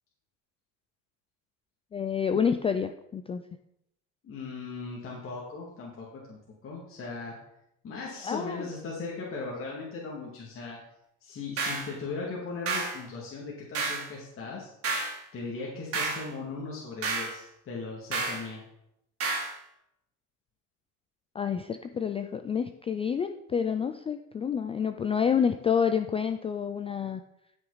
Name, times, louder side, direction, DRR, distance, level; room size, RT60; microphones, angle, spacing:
voice 1, 1.9-3.4 8.2-8.7 21.3-27.2, left 7 dB, 15° left, 9 dB, 0.3 m, -28 dB
voice 2, 4.2-7.4 7.8-10.8 11.2-14.7 15.3-18.6, left 4 dB, 35° left, -3 dB, 2.2 m, -38 dB
sound 1, 11.6-11.9 12.7-13.0 13.7-14.1 14.8-15.2 15.9-16.3 17.0-17.3 18.1-18.4 19.2-19.5, right 4 dB, 40° right, 2.7 m, -30 dB
12.0 x 5.7 x 4.0 m, 0.80 s
supercardioid pair, 115°, 37 cm